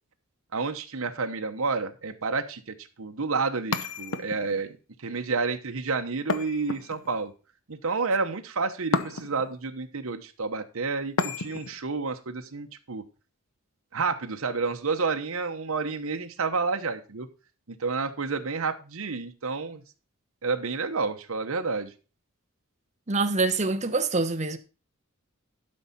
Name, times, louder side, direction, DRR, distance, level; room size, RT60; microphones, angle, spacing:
voice 1, 0.5-7.3 7.7-13.0 13.9-17.3 17.7-19.8 20.4-21.9, right 4 dB, 75° right, 1.0 m, -30 dB
sound 1, 3.7-4.7 6.3-7.3 8.9-9.6 11.2-11.8, left 4 dB, 70° left, 0.9 m, -31 dB
voice 2, 23.1-24.6, right 3 dB, 35° right, 1.0 m, -25 dB
12.0 x 5.5 x 4.1 m
head